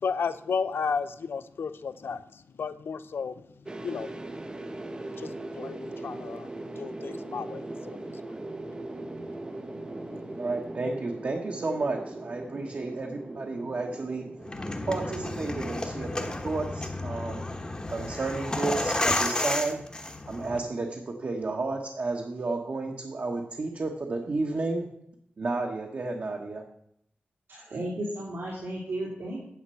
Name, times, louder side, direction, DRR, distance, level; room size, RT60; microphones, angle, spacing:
voice 1, 0.0-2.2 2.6-3.3 3.8-4.1 5.2-6.5 6.7-8.0, left 5 dB, 85° left, 13 dB, 0.6 m, -33 dB
sound 1, 3.7-19.8, right 2 dB, 25° right, 0.7 m, -41 dB
voice 2, 10.3-14.2 14.9-17.5 17.9-19.8 20.3-24.9 25.4-26.6, right 3 dB, 50° right, 1 dB, 1.1 m, -32 dB
sound 2, 14.4-20.6, left 2 dB, 25° left, 1.1 m, -31 dB
voice 3, 27.5-29.4, right 1 dB, 85° right, -5 dB, 2.5 m, -34 dB
9.5 x 7.3 x 5.6 m, 0.72 s
wide cardioid pair, 115°, 4 cm